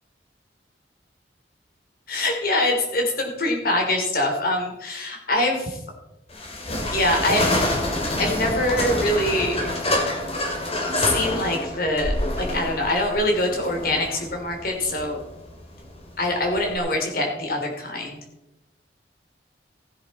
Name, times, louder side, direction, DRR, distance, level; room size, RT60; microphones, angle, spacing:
voice 1, 2.1-5.8 6.9-7.5 8.2-9.6 10.9-15.2 16.2-18.2, left 1 dB, 50° left, 2 dB, 3.1 m, -24 dB
sound 1, 6.3-16.8, left 1 dB, 35° left, 2.3 m, -27 dB
16.0 x 10.0 x 4.2 m, 0.92 s
head